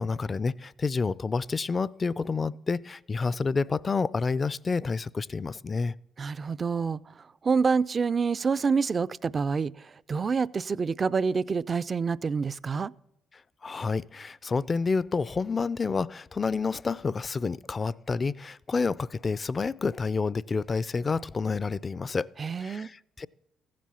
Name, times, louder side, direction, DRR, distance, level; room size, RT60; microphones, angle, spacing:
voice 1, 0.0-5.9 13.6-22.3 22.6-23.3, left 4 dB, 35° left, 0.4 m, -29 dB
voice 2, 6.2-7.0 7.4-12.9 22.4-22.9, right 5 dB, 40° right, 0.4 m, -27 dB
15.0 x 7.6 x 7.0 m
hypercardioid pair, 55°, 0 cm